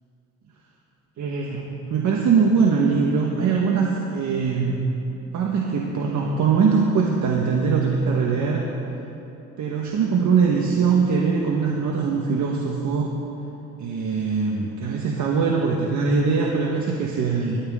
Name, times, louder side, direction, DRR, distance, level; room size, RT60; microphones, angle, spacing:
voice 1, 1.2-4.8 5.3-8.7 9.6-13.1 13.8-17.6, right 5 dB, 70° right, -1 dB, 1.7 m, -22 dB
25.5 x 14.0 x 3.9 m, 2.9 s
cardioid pair, 90°, 30 cm